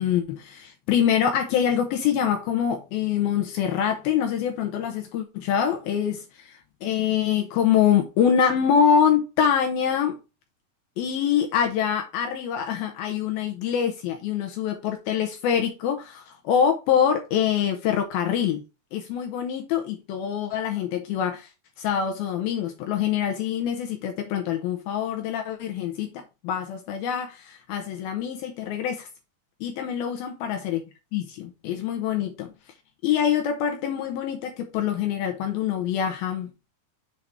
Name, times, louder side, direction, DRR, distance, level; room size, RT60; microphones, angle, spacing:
voice 1, 0.0-10.2 11.0-18.6 18.9-21.5 21.8-29.1 29.6-30.8 31.1-32.5 33.0-36.5, left 8 dB, 75° left, 2.6 m, -25 dB
7.4 x 4.1 x 4.8 m
omnidirectional pair, 4.6 m